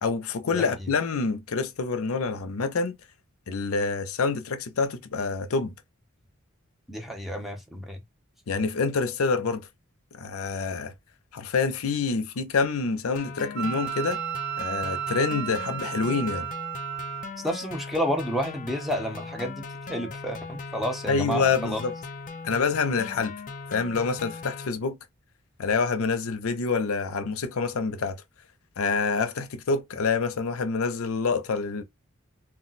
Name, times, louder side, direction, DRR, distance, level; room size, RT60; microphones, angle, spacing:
voice 1, 0.0-3.0 3.5-5.7 8.5-9.7 10.1-10.9 11.3-14.2 14.6-16.5 21.1-21.9 22.4-23.3 23.7-25.0 25.6-28.2 28.8-31.8, left 4 dB, 90° left, 0.5 m, -27 dB
voice 2, 6.9-8.0 17.4-21.8, equal, ahead, 0.6 m, -30 dB
sound 1, 13.2-24.7, left 4 dB, 40° left, 0.4 m, -39 dB
Wind instrument woodwind instrument, 13.6-17.3, right 12 dB, 55° right, 0.4 m, -33 dB
2.3 x 2.1 x 3.9 m
head